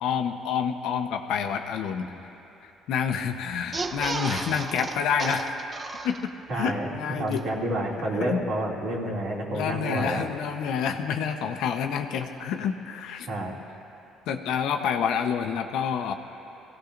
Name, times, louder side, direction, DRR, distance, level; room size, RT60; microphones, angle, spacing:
voice 1, 0.0-2.1 2.9-5.6 6.0-7.5 8.2-8.4 9.5-13.3 14.3-16.1, left 7 dB, 70° left, 6 dB, 0.9 m, -28 dB
sound 1, 3.6-6.6 7.0-7.1 7.3-7.4, right 3 dB, 20° right, 0.4 m, -34 dB
voice 2, 6.5-6.9 7.2-10.2 13.3-13.6, right 1 dB, 55° right, -3 dB, 2.5 m, -29 dB
24.5 x 16.5 x 2.6 m, 2.9 s
cardioid pair, 150°, 0 cm